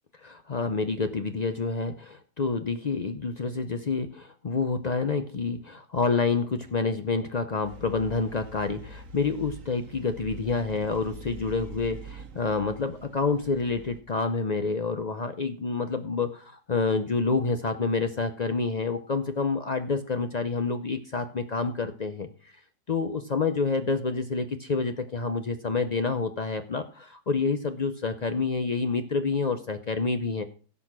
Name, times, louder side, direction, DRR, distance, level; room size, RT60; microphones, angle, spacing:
voice 1, 0.2-22.5 22.9-30.4, left 4 dB, 70° left, 8 dB, 0.4 m, -28 dB
sound 1, 7.6-14.0, right 3 dB, 50° right, 1.4 m, -44 dB
16.5 x 6.3 x 6.1 m, 0.41 s
omnidirectional pair, 1.9 m